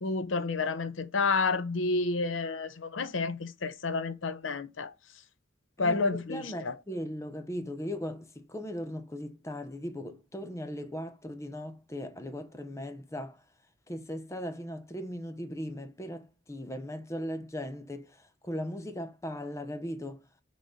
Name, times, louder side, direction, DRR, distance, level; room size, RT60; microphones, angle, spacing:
voice 1, 0.0-4.9 5.8-6.8, left 4 dB, 85° left, 0.7 m, -30 dB
voice 2, 5.8-13.4 13.9-20.2, equal, 15° left, 0.8 m, -38 dB
6.4 x 4.1 x 5.2 m
head